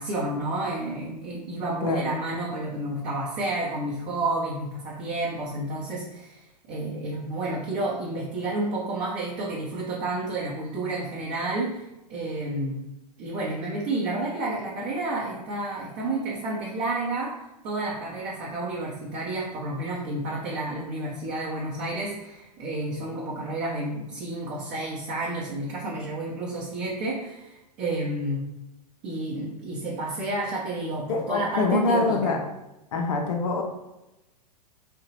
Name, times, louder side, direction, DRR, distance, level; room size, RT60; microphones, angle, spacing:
voice 1, 0.0-12.8 13.2-17.3 17.6-28.5 29.0-32.4, right 2 dB, 35° right, -6 dB, 0.7 m, -30 dB
voice 2, 1.8-2.2 31.1-32.4 32.9-33.6, left 3 dB, 50° left, 2 dB, 0.5 m, -25 dB
2.7 x 2.2 x 2.8 m, 0.96 s
figure-of-eight pair, 100°, 21 cm